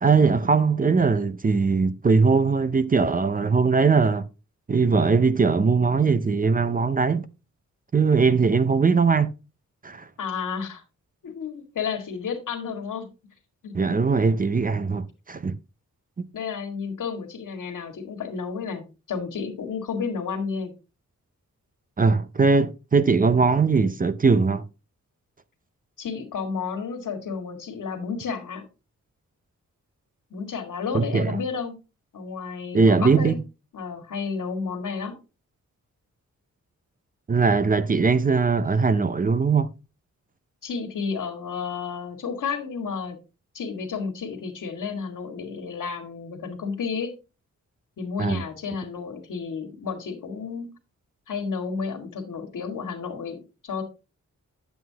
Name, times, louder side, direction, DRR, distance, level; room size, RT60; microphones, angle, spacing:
voice 1, 0.0-4.2 4.7-7.3 7.9-9.3 9.8-10.1 13.7-15.6 22.0-24.7 30.9-31.4 32.7-33.4 37.3-39.7 48.2-48.4, right 4 dB, 25° right, 0.5 m, -20 dB
voice 2, 10.2-10.8 11.2-13.1 13.6-14.0 16.3-20.7 26.0-28.7 30.3-31.8 32.1-33.4 33.7-35.2 40.6-43.2 43.5-47.1 48.0-50.7 51.3-53.8, left 5 dB, 85° left, 2.0 m, -31 dB
9.3 x 8.0 x 2.8 m
wide cardioid pair, 155°, 31 cm